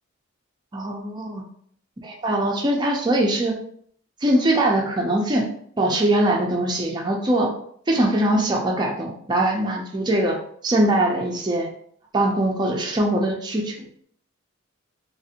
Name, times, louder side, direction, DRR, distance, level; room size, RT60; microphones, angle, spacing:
voice 1, 0.7-1.4 2.0-3.6 4.2-5.5 5.8-7.5 7.9-10.4 10.6-11.7 12.1-13.7, right 1 dB, 20° right, 0 dB, 0.4 m, -22 dB
3.2 x 2.5 x 2.8 m, 0.63 s
head